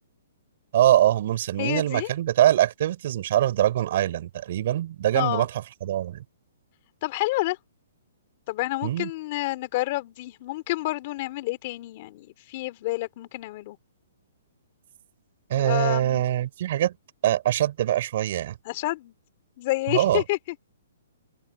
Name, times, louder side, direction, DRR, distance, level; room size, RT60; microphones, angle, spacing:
voice 1, 0.7-6.2 8.8-9.1 15.5-16.9 17.2-18.6 19.9-20.2, right 12 dB, 50° right, 3.9 m, -23 dB
voice 2, 1.6-2.1 5.1-5.5 7.0-7.6 8.5-13.8 15.6-16.2 18.6-19.1 19.6-20.6, left 19 dB, 40° left, 2.6 m, -29 dB
hypercardioid pair, 155°, 0 cm